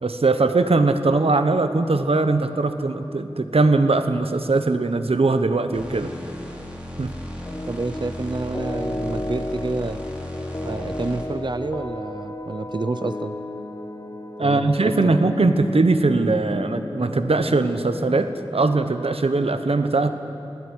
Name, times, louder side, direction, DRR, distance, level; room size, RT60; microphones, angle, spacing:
voice 1, 0.0-6.1 7.0-7.1 14.4-20.1, right 3 dB, 90° right, 9 dB, 1.1 m, -20 dB
sound 1, 5.7-11.5, left 1 dB, 10° right, 4.3 m, -35 dB
sound 2, 7.4-18.2, left 1 dB, 35° left, 1.1 m, -33 dB
voice 2, 7.7-10.0 10.6-13.4 14.4-15.2, right 3 dB, 50° right, 12 dB, 0.6 m, -29 dB
19.5 x 18.5 x 9.8 m, 2.7 s
wide cardioid pair, 55°, 10 cm